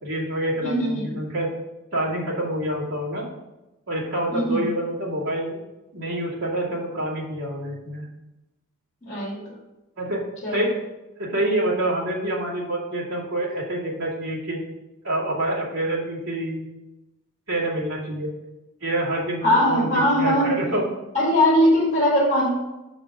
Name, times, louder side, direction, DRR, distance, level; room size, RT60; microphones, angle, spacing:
voice 1, 0.0-1.5 1.9-3.3 3.9-5.6 5.9-8.1 10.0-10.2 10.5-10.7 11.2-14.6 15.0-16.7 17.5-18.3 18.8-20.9, right 1 dB, 70° right, -6 dB, 2.4 m, -27 dB
voice 2, 0.6-1.1 4.3-4.6 9.0-9.4 10.4-10.7 19.4-20.8 21.1-22.5, equal, 35° left, -4 dB, 2.3 m, -20 dB
6.0 x 5.2 x 5.5 m, 1.0 s
head